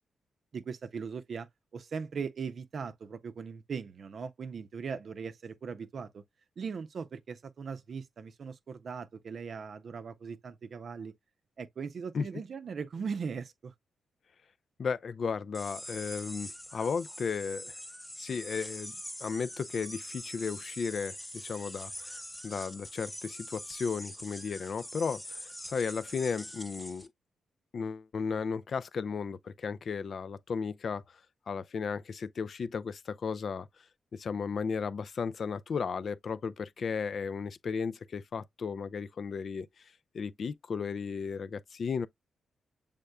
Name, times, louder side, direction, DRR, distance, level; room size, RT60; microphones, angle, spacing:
voice 1, 0.5-6.2 6.6-11.1 11.6-13.7, right 5 dB, 55° right, 0.6 m, -39 dB
voice 2, 14.8-17.8 18.2-18.9 19.2-22.2 22.4-27.1 27.7-31.2 31.5-33.8 34.1-39.7 40.1-42.1, left 5 dB, 55° left, 0.4 m, -35 dB
sound 1, 15.5-27.1, left 1 dB, 5° left, 0.8 m, -44 dB
6.6 x 3.5 x 2.2 m
cardioid pair, 85°, 0 cm